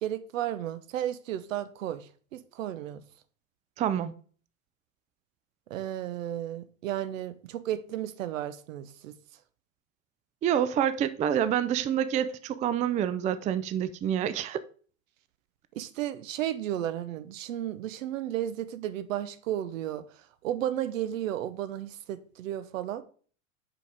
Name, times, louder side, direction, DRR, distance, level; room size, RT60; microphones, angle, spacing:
voice 1, 0.0-3.0 5.7-9.1 15.7-20.0 20.4-23.0, right 12 dB, 75° right, 0.9 m, -33 dB
voice 2, 3.8-4.1 10.4-14.6, right 9 dB, 20° right, 0.4 m, -27 dB
5.8 x 5.1 x 4.8 m
hypercardioid pair, 95°, 40 cm